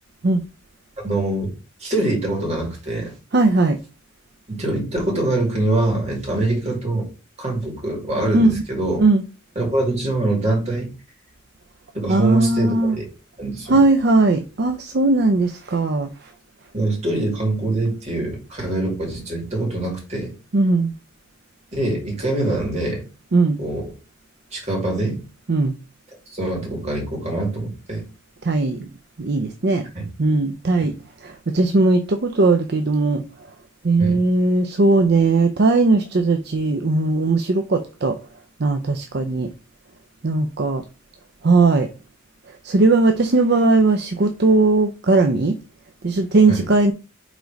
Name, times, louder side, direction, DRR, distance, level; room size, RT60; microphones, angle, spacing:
voice 1, 1.0-1.5 1.8-3.1 4.5-7.1 7.4-9.0 9.5-10.9 11.9-13.1 13.4-13.8 16.7-20.3 21.7-23.0 23.6-23.8 24.5-25.2 26.3-28.0 29.9-30.1 30.8-30.9 34.0-34.2 46.5-46.7, right 2 dB, 30° right, 2.7 m, -24 dB
voice 2, 3.3-3.8 8.3-8.5 9.0-9.2 12.1-13.0 13.7-16.1 20.5-20.9 23.3-23.6 25.5-25.7 28.4-28.9 29.2-29.9 30.2-30.9 31.2-33.2 33.8-38.2 38.6-39.5 40.2-40.8 41.4-41.9 42.6-45.6 46.0-46.9, right 3 dB, 50° right, 0.5 m, -18 dB
5.0 x 3.9 x 5.1 m
head